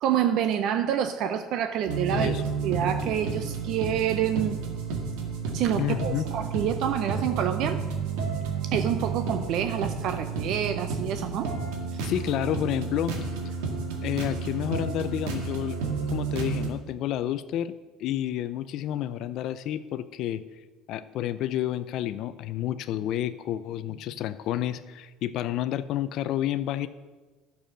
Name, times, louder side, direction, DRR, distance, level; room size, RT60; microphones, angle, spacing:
voice 1, 0.0-4.6 5.5-7.8 8.6-11.5 11.9-12.1, right 9 dB, 55° right, 9 dB, 0.5 m, -27 dB
sound 1, 1.9-16.7, right 5 dB, 90° right, 1.9 m, -31 dB
voice 2, 2.1-2.4 5.7-6.3 12.0-13.3 14.0-15.8 16.1-17.7 18.0-20.4 20.9-26.9, left 12 dB, 55° left, 13 dB, 0.5 m, -30 dB
11.5 x 6.9 x 6.2 m, 1.3 s
cardioid pair, 150°, 0 cm